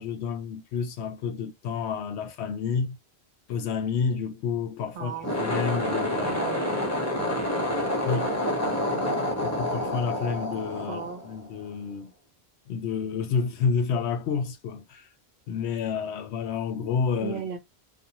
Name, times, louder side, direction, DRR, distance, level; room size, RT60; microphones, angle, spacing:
voice 1, 0.0-3.0 3.5-6.5 8.0-8.3 9.4-12.1 12.7-15.1 15.5-17.6, left 6 dB, 90° left, 0.9 m, -30 dB
voice 2, 4.9-5.4 6.2-7.4 10.9-11.2 17.2-17.6, right 7 dB, 60° right, 0.8 m, -37 dB
sound 1, 5.1-11.7, left 1 dB, 15° left, 0.7 m, -28 dB
2.5 x 2.1 x 2.8 m
omnidirectional pair, 1.1 m